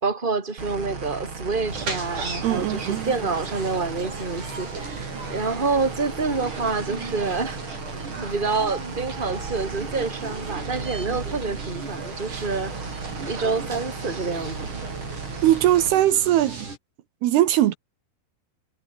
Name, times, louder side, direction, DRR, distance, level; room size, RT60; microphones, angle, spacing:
voice 1, 0.0-7.6 8.2-12.8 13.2-14.6, right 4 dB, 10° right, 3.6 m, -27 dB
sound 1, 0.6-15.9, right 4 dB, 30° right, 4.3 m, -36 dB
sound 2, 1.7-16.8, right 3 dB, 50° right, 9.3 m, -37 dB
voice 2, 2.4-3.1 15.4-16.7 17.2-17.8, right 13 dB, 75° right, 3.2 m, -20 dB
omnidirectional pair, 4.7 m